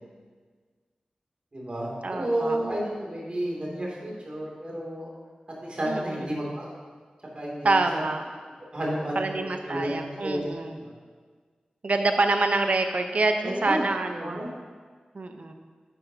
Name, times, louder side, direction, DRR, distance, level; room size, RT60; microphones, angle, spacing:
voice 1, 1.5-5.1 5.6-6.7 7.3-8.0 8.7-10.4 10.8-10.9 13.4-13.8 14.1-14.5, right 1 dB, 45° right, -4 dB, 2.6 m, -31 dB
voice 2, 2.0-2.6 5.9-6.4 7.6-8.2 9.1-10.8 11.8-14.5 15.1-15.5, right 3 dB, 60° right, 5 dB, 0.8 m, -26 dB
10.0 x 9.4 x 2.8 m, 1.6 s
wide cardioid pair, 70°, 3 cm